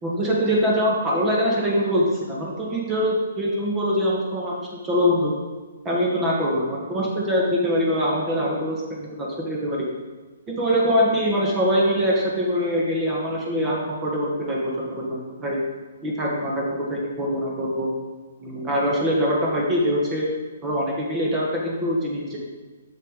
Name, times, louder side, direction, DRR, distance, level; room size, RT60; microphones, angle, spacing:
voice 1, 0.0-5.3 5.8-9.9 10.5-15.6 16.0-17.9 18.4-20.3 20.6-22.4, equal, 20° right, -3 dB, 1.4 m, -23 dB
7.4 x 6.4 x 3.7 m, 1.3 s
figure-of-eight pair, 125°, 0 cm